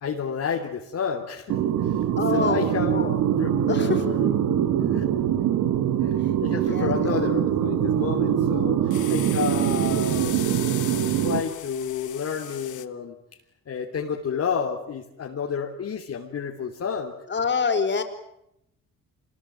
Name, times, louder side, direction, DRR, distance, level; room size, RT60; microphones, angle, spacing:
voice 1, 0.0-1.5 1.8-2.0 2.3-2.9 3.4-4.4 4.9-5.0 6.0-6.1 6.4-10.3 11.2-13.2 13.7-17.1, left 7 dB, 55° left, 1 dB, 3.3 m, -30 dB
sound 1, 1.5-11.4, right 10 dB, 85° right, 1.9 m, -23 dB
voice 2, 2.2-3.2 3.7-4.0 6.2-6.3 6.7-7.2 17.3-18.0, left 5 dB, 35° left, 6 dB, 4.8 m, -26 dB
sound 2, 8.9-12.9, left 13 dB, 80° left, 1.5 m, -38 dB
26.5 x 21.0 x 9.3 m, 0.80 s
cardioid pair, 90°, 30 cm